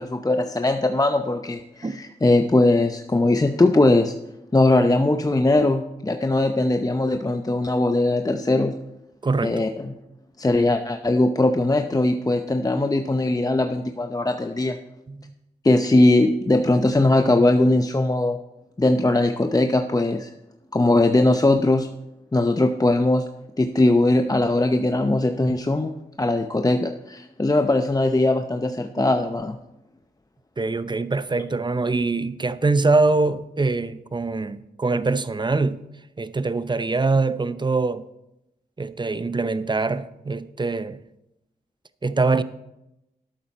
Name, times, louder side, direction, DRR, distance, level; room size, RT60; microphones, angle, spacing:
voice 1, 0.0-4.1 4.5-8.7 9.4-9.7 10.4-14.8 15.6-18.4 18.8-20.3 20.7-21.9 22.3-23.2 23.6-29.6, left 2 dB, 20° left, 0.7 m, -20 dB
voice 2, 9.2-9.6 15.1-15.3 29.0-29.1 30.6-35.8 36.2-38.1 38.8-41.0 42.0-42.4, right 3 dB, 30° right, 0.7 m, -23 dB
12.0 x 8.8 x 4.3 m
cardioid pair, 45°, 16 cm